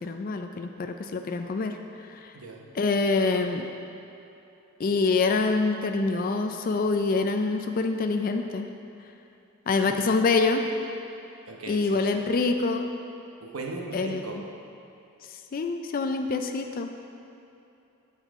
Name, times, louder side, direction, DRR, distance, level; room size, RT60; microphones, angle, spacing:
voice 1, 0.0-2.3 2.8-3.7 4.8-8.7 9.7-10.7 11.7-12.9 13.9-14.2 15.5-16.9, left 3 dB, 40° left, 5 dB, 0.4 m, -26 dB
voice 2, 2.3-2.7 9.7-10.0 11.5-12.2 13.4-14.4, right 3 dB, 70° right, 0 dB, 0.9 m, -38 dB
9.4 x 7.3 x 3.6 m, 2.8 s
head